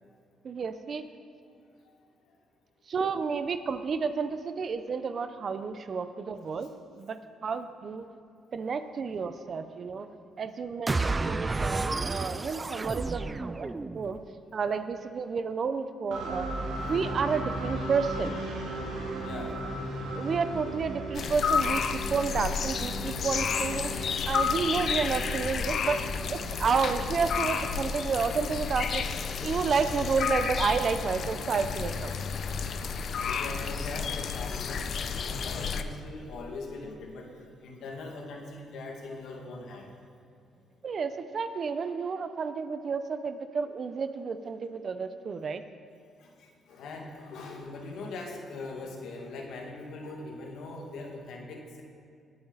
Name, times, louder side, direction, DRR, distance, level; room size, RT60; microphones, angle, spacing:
voice 1, 0.4-1.0 2.9-6.7 7.0-8.0 8.5-10.1 10.4-13.7 13.9-14.2 14.5-16.5 16.9-18.4 20.2-26.0 26.3-29.1 29.4-32.1 40.8-45.6, right 5 dB, 45° right, 10 dB, 0.7 m, -31 dB
sound 1, 10.9-14.2, right 3 dB, 25° right, 0.4 m, -31 dB
sound 2, 16.1-27.9, right 2 dB, 80° right, 2.2 m, -37 dB
voice 2, 19.2-19.6 33.2-39.9 46.2-51.8, left 3 dB, 80° left, 0 dB, 2.1 m, -41 dB
sound 3, 21.1-35.8, left 6 dB, 60° left, 0.7 m, -31 dB
19.0 x 8.7 x 4.1 m, 2.4 s
cardioid pair, 105°, 0 cm